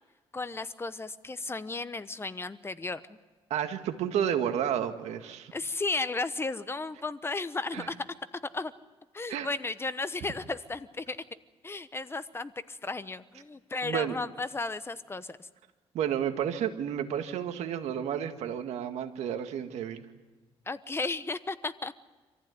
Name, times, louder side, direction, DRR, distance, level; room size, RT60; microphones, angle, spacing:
voice 1, 0.3-3.2 5.5-7.9 8.5-8.7 9.1-11.2 11.6-15.5 20.7-21.9, left 3 dB, 20° left, 13 dB, 1.1 m, -34 dB
voice 2, 3.5-5.5 7.7-7.9 9.3-9.5 13.8-14.2 15.9-20.1, right 9 dB, 80° right, 7 dB, 1.9 m, -31 dB
27.0 x 15.0 x 9.6 m, 1.3 s
cardioid pair, 95°, 11 cm